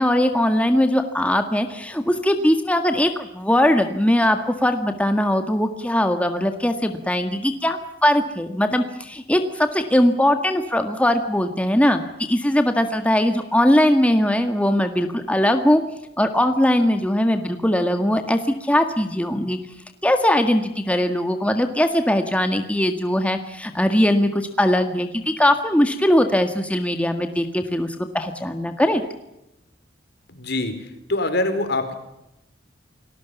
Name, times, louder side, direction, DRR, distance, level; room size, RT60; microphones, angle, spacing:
voice 1, 0.0-12.0 12.3-15.8 16.2-19.6 20.0-29.0, left 1 dB, 5° left, 6 dB, 1.8 m, -20 dB
voice 2, 30.3-31.9, left 2 dB, 65° left, 9 dB, 4.8 m, -24 dB
29.5 x 20.0 x 7.1 m, 0.86 s
head